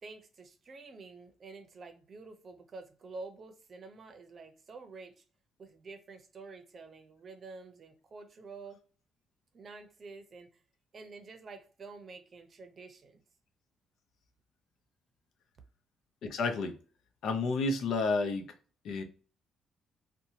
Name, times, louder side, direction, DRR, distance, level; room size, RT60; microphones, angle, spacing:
voice 1, 0.0-5.2 5.6-8.8 9.5-10.6 10.9-13.2, right 3 dB, 45° right, 0.6 m, -49 dB
voice 2, 16.2-16.8 17.2-18.5 18.8-19.0, left 3 dB, 75° left, 0.5 m, -30 dB
2.8 x 2.2 x 2.7 m
cardioid pair, 90°, 0 cm